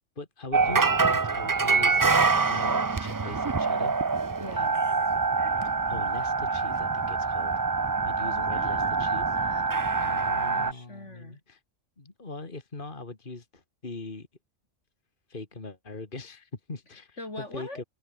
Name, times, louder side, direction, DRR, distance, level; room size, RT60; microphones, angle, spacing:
voice 1, 0.0-3.9 5.6-7.5 8.0-9.4 10.1-11.6 12.0-14.3 15.3-17.8, left 3 dB, 45° left, 2.6 m, -41 dB
sound 1, 0.5-10.7, right 4 dB, 30° right, 0.4 m, -25 dB
voice 2, 4.4-4.8 8.1-11.4 17.2-17.8, left 2 dB, 75° left, 6.2 m, -43 dB
omnidirectional pair, 1.3 m